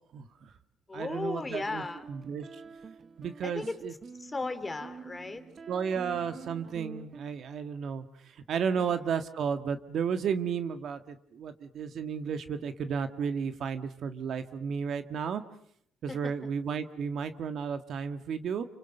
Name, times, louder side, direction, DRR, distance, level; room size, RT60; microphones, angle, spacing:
voice 1, 0.1-0.5 0.9-2.6 3.2-3.9 5.7-15.4 16.0-18.7, right 6 dB, 65° right, 9 dB, 1.6 m, -33 dB
voice 2, 0.9-2.0 3.4-3.8 4.2-5.4 8.8-9.0 16.1-16.3, left 3 dB, 25° left, 9 dB, 3.2 m, -36 dB
sound 1, 1.7-7.4, right 5 dB, 40° right, 1.1 m, -47 dB
30.0 x 25.0 x 6.7 m, 0.68 s
cardioid pair, 90°, 0 cm